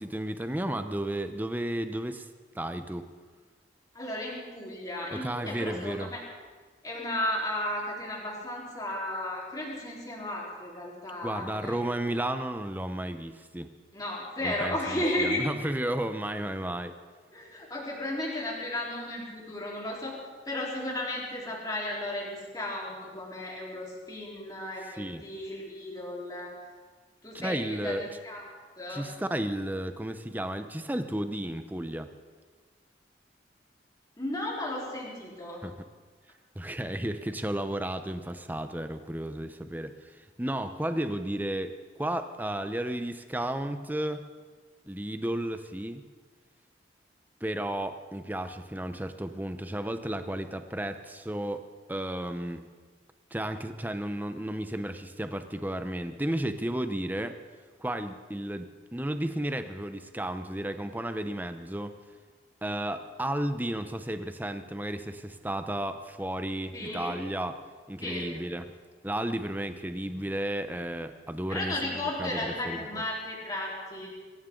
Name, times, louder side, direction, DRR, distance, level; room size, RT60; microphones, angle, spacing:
voice 1, 0.0-2.3 2.5-3.1 5.1-6.1 11.2-13.7 14.4-16.9 24.9-25.2 27.3-28.0 28.9-32.1 35.6-35.7 36.5-44.2 44.9-46.1 47.4-52.6 53.3-57.4 57.8-61.9 62.6-67.6 67.9-68.7 69.0-73.0, right 1 dB, 10° right, 9 dB, 0.8 m, -33 dB
voice 2, 3.9-6.2 6.8-11.8 13.9-15.5 17.3-20.2 20.5-26.6 27.2-28.5 28.8-29.0 34.2-35.6 66.7-67.2 68.0-68.3 71.5-74.1, left 1 dB, 20° left, -4 dB, 4.1 m, -34 dB
24.0 x 15.0 x 3.9 m, 1.5 s
head